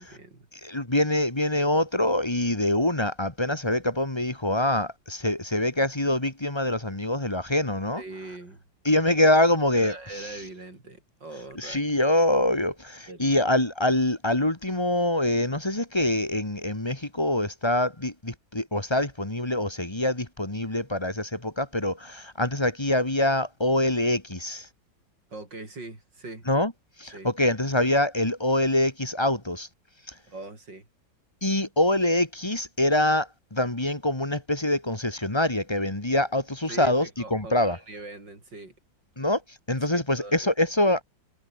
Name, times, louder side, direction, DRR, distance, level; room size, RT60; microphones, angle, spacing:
voice 1, 0.0-0.5 8.0-8.6 9.7-11.8 13.1-13.4 25.3-26.5 27.1-27.3 30.3-30.9 36.7-38.7 39.9-40.5, right 2 dB, 60° right, 6.7 m, -41 dB
voice 2, 0.6-8.0 8.9-9.9 11.6-24.7 26.5-26.7 27.0-29.7 31.4-37.8 39.2-39.4 39.7-41.0, left 1 dB, 15° left, 2.1 m, -25 dB
omnidirectional pair, 2.1 m